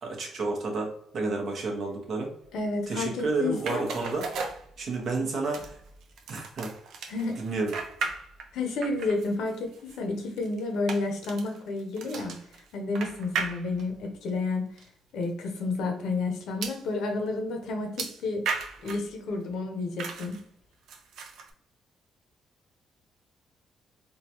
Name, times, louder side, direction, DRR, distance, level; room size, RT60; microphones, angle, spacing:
voice 1, 0.0-2.3 2.9-4.3 4.8-5.8 6.3-6.7 7.4-7.7, right 3 dB, 60° right, 2 dB, 1.0 m, -30 dB
voice 2, 2.5-3.8 7.1-7.4 8.5-12.4 12.7-14.6 15.1-18.5 18.8-20.4, left 3 dB, 80° left, 3 dB, 0.8 m, -30 dB
sound 1, 3.6-5.2 5.5-8.5 8.8-14.1 14.8-14.9 15.2-15.3 16.6-16.9 18.0-19.1 20.0-20.4 20.9-21.5, right 5 dB, 75° right, 0.5 m, -36 dB
3.7 x 2.3 x 2.8 m, 0.66 s
cardioid pair, 90°, 0 cm